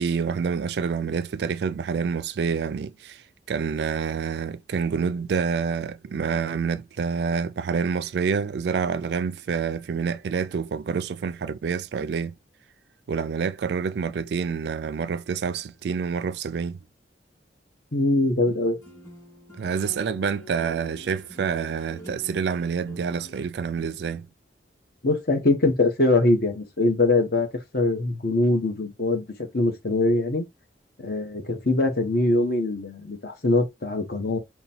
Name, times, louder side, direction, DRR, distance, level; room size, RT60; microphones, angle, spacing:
voice 1, 0.0-3.2 3.5-12.3 13.1-16.8 19.6-24.3, right 6 dB, 65° right, 0.3 m, -27 dB
voice 2, 17.9-18.8 25.0-27.5 27.7-30.4 31.0-34.4, left 2 dB, 55° left, 1.1 m, -23 dB
sound 1, 18.5-23.4, left 1 dB, 20° left, 2.2 m, -45 dB
4.0 x 2.2 x 4.2 m
head